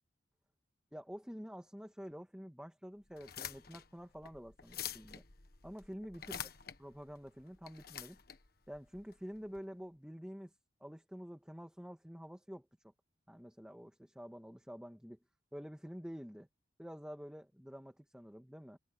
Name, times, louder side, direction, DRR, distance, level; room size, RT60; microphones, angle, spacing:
voice 1, 0.9-5.2 5.6-6.4 6.8-8.2 8.7-10.5 10.8-12.9 13.3-15.2 15.5-16.5 16.8-18.8, equal, 5° right, 1.8 m, -48 dB
sound 1, 3.1-9.6, left 9 dB, 55° left, 1.5 m, -48 dB
head